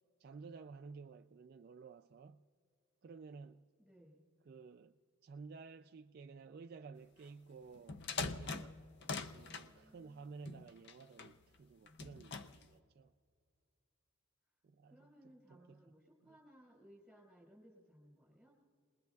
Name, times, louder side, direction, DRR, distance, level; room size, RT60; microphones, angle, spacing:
voice 1, 0.2-2.4 3.0-3.7 4.5-8.8 9.3-13.1 14.6-15.0 15.5-15.9 16.2-16.4, right 4 dB, 45° right, 0.3 m, -54 dB
voice 2, 3.8-4.3 9.4-10.3 14.9-18.7, equal, ahead, 5.0 m, -63 dB
sound 1, 7.7-9.7 10.5-11.3 11.9-12.7, left 4 dB, 50° left, 0.5 m, -43 dB
29.5 x 20.5 x 2.3 m
head